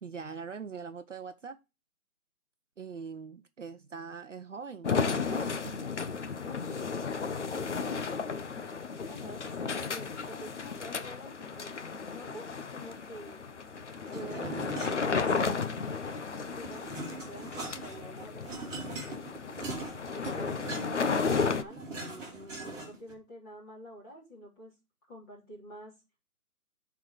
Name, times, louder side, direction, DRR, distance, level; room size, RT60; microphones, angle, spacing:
voice 1, 0.0-1.6 2.8-5.7 14.2-14.7, right 5 dB, 55° right, 0.8 m, -42 dB
sound 1, 4.8-21.6, left 5 dB, 50° left, 0.9 m, -34 dB
voice 2, 7.5-8.5 9.1-11.8 12.1-13.4 14.1-14.9 15.2-18.8 20.1-24.7 25.1-25.9, equal, 15° left, 3.0 m, -48 dB
sound 2, 14.1-15.8 16.1-23.1, right 2 dB, 5° right, 2.5 m, -41 dB
9.8 x 4.7 x 4.8 m
figure-of-eight pair, 165°, 45 cm